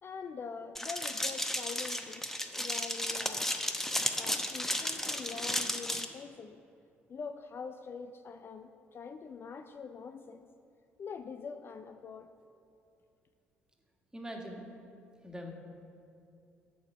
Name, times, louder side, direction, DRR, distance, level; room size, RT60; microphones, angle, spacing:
voice 1, 0.0-3.6 4.2-6.6 7.1-10.5 11.0-12.3, left 5 dB, 40° left, 9 dB, 0.4 m, -44 dB
sound 1, 0.8-6.1, left 1 dB, 5° left, 0.8 m, -34 dB
voice 2, 14.1-14.6 15.2-15.5, equal, 10° right, 1 dB, 1.6 m, -42 dB
7.3 x 6.8 x 6.7 m, 2.6 s
figure-of-eight pair, 50°, 6 cm